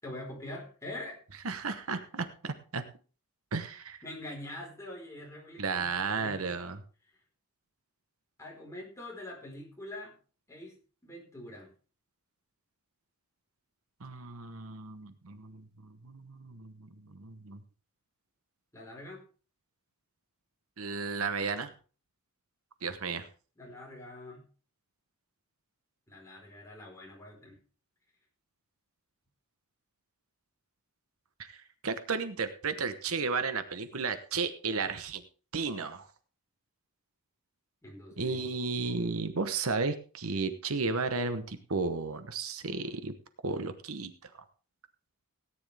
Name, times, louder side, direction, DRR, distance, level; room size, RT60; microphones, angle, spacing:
voice 1, 0.0-1.2 4.0-6.5 8.4-10.2 10.5-10.7 11.0-11.7 18.7-19.2 23.6-24.4 26.1-27.6 37.8-38.4 38.8-39.0, left 1 dB, 15° left, -2 dB, 4.4 m, -44 dB
voice 2, 1.4-2.8 3.5-4.0 5.6-6.8 14.0-17.6 20.8-21.7 22.8-23.3 31.4-35.2 35.5-36.1 38.2-43.1 43.4-44.3, right 4 dB, 70° right, 10 dB, 1.1 m, -34 dB
17.5 x 9.8 x 3.4 m, 0.38 s
head